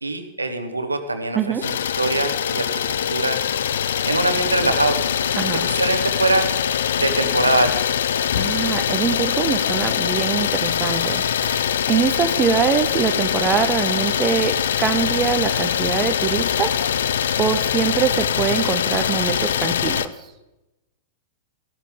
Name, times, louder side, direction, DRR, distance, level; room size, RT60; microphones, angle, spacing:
voice 1, 0.0-1.4 1.6-2.8 3.1-3.4 4.0-5.0 5.5-6.5 7.0-7.8, right 2 dB, 80° right, 8 dB, 1.2 m, -22 dB
voice 2, 1.3-1.7 5.4-5.7 8.3-17.1 17.4-20.1, right 7 dB, 25° right, 8 dB, 0.9 m, -23 dB
Idling, 1.6-20.1, left 9 dB, 60° left, 0.5 m, -23 dB
14.5 x 12.5 x 3.8 m, 0.98 s
figure-of-eight pair, 100°, 0 cm